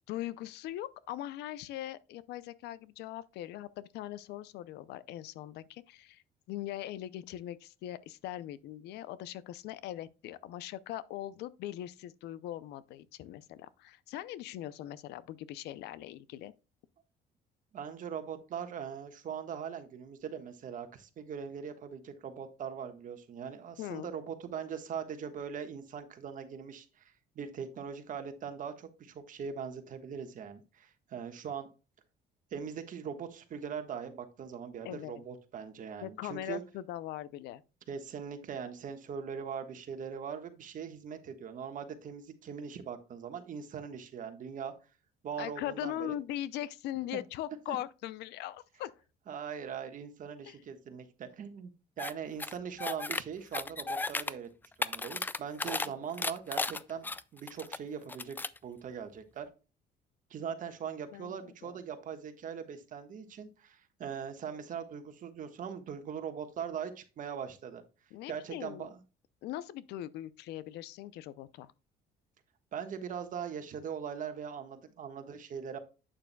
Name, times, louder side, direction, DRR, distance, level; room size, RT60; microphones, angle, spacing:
voice 1, 0.1-6.2 6.5-16.5 23.8-24.1 34.8-35.2 36.0-37.6 45.4-48.9 50.4-50.6 55.8-55.9 61.1-61.8 68.1-68.9 69.4-71.7, left 13 dB, 80° left, 0.5 m, -41 dB
voice 2, 17.7-31.7 32.5-36.6 37.9-44.7 45.2-46.1 47.1-47.2 47.7-47.8 49.3-51.7 52.0-54.5 54.8-58.4 58.6-59.5 60.3-67.8 68.3-69.0 72.7-75.8, right 7 dB, 50° right, 1.4 m, -41 dB
sound 1, 52.0-52.1 52.4-53.2 53.5-54.3 54.6-55.9 56.2-57.8 58.1-58.6, left 3 dB, 10° left, 0.3 m, -34 dB
8.6 x 6.8 x 2.2 m
cardioid pair, 110°, 17 cm